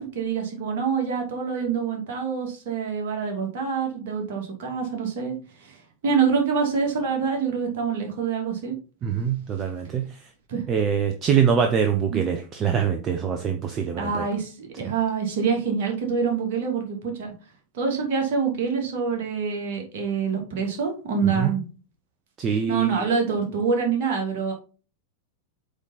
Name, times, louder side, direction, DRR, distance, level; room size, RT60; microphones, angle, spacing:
voice 1, 0.0-8.8 10.5-10.7 12.1-12.2 14.0-17.3 17.7-21.6 22.4-24.5, right 6 dB, 50° right, 1 dB, 2.6 m, -26 dB
voice 2, 9.0-10.2 10.7-14.3 14.8-14.9 21.4-21.5 22.4-23.0, right 7 dB, 30° right, 6 dB, 0.8 m, -24 dB
8.1 x 4.0 x 4.1 m, 0.35 s
figure-of-eight pair, 90°, 0 cm